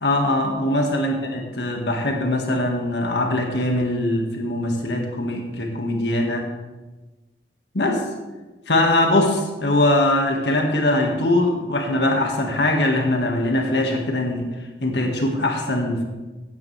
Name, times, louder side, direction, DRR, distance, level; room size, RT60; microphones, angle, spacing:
voice 1, 0.0-6.5 7.7-8.0 8.7-14.5 14.8-16.0, left 1 dB, 80° left, 2 dB, 1.9 m, -21 dB
16.5 x 9.5 x 3.4 m, 1.2 s
head